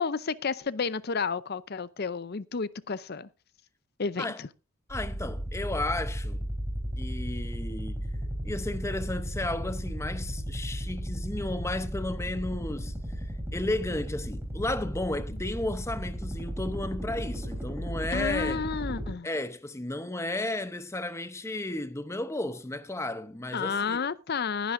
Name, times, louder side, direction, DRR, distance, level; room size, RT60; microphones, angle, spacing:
voice 1, 0.0-3.3 4.0-4.5 18.1-19.3 23.5-24.7, left 5 dB, 50° left, 0.6 m, -31 dB
voice 2, 4.9-6.5 7.0-8.1 8.4-18.7 19.2-24.1, left 2 dB, 15° left, 0.7 m, -33 dB
sound 1, 4.9-19.1, equal, 10° right, 3.5 m, -35 dB
21.0 x 10.0 x 2.6 m
head